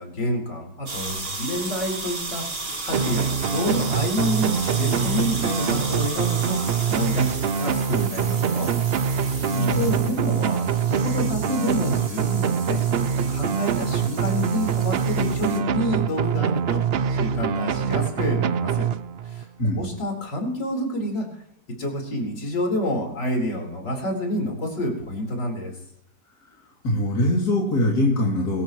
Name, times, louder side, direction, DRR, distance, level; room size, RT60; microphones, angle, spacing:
voice 1, 0.0-6.6 6.9-8.7 9.1-12.8 13.3-16.8 17.1-18.9 19.2-19.5 19.8-21.4 21.8-25.7, equal, 85° left, 1 dB, 5.0 m, -28 dB
sound 1, 0.9-15.6, right 3 dB, 30° right, 1.8 m, -34 dB
sound 2, 2.9-19.4, right 7 dB, 70° right, 0.5 m, -24 dB
voice 2, 9.5-9.9 19.6-19.8 26.8-28.6, left 1 dB, 60° left, -3 dB, 3.5 m, -22 dB
23.5 x 13.5 x 3.1 m, 0.72 s
omnidirectional pair, 1.8 m